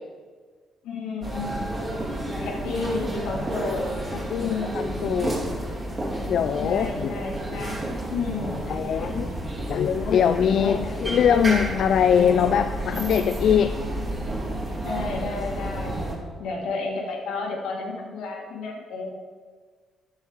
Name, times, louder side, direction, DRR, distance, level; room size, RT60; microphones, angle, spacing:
voice 1, 0.8-3.9 4.4-5.2 6.6-8.7 9.7-9.8 10.6-10.9 12.9-13.3 14.8-19.1, left 4 dB, 90° left, -1 dB, 1.8 m, -32 dB
sound 1, 1.2-16.2, right 1 dB, 30° right, 2.3 m, -31 dB
voice 2, 4.3-5.4 6.3-7.1 7.5-7.6 8.7-9.3 9.7-13.7, left 8 dB, 65° left, 9 dB, 0.3 m, -22 dB
10.0 x 6.6 x 4.8 m, 1.6 s
cardioid pair, 90°, 0 cm